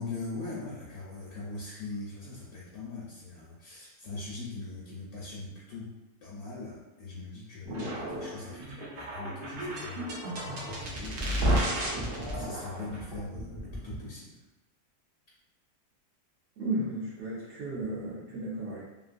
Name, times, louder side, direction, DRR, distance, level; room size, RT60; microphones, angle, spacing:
voice 1, 0.0-5.9 6.2-12.0 12.3-14.3, left 3 dB, 70° left, -5 dB, 1.1 m, -41 dB
sound 1, 7.6-14.1, right 1 dB, 85° right, 0.4 m, -33 dB
voice 2, 16.6-18.8, right 2 dB, 60° right, -7 dB, 0.8 m, -34 dB
3.0 x 2.6 x 2.5 m, 1.0 s
omnidirectional pair, 1.8 m